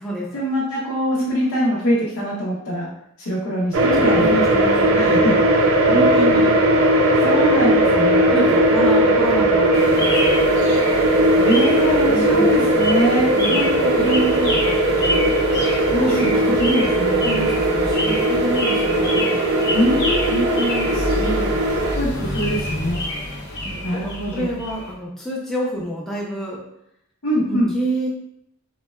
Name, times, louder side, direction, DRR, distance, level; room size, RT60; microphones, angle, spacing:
voice 1, 0.3-2.9 3.2-4.3 4.9-5.4 6.3-6.4 7.2-8.4 11.4-13.3 15.9-16.3 16.6-17.2 19.7-20.6 21.9-23.0 23.8-24.5 27.2-27.7, equal, 80° left, -6 dB, 0.7 m, -23 dB
sound 1, 3.7-22.0, right 1 dB, 65° right, 0.4 m, -18 dB
voice 2, 4.0-5.2 5.9-6.5 7.7-10.5 12.1-12.5 13.4-15.3 16.0-16.5 17.2-19.4 20.3-20.9 21.2-21.6 23.6-26.6 27.4-28.1, right 1 dB, ahead, -5 dB, 0.5 m, -27 dB
sound 2, 9.7-24.9, left 1 dB, 50° left, 0.8 m, -28 dB
3.9 x 2.1 x 2.2 m, 0.76 s
head